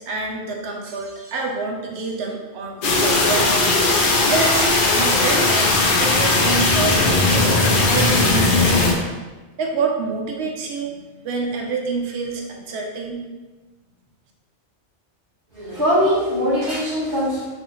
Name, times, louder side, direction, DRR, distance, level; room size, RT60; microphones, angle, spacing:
voice 1, 0.0-4.0 4.3-5.7 6.0-7.6 7.9-8.9 9.6-13.2, right 4 dB, 70° right, 0 dB, 0.9 m, -27 dB
sound 1, 2.8-8.9, left 2 dB, 55° left, 0.6 m, -18 dB
voice 2, 15.5-17.5, equal, 55° right, -10 dB, 1.4 m, -21 dB
4.1 x 2.5 x 2.9 m, 1.2 s
omnidirectional pair, 1.2 m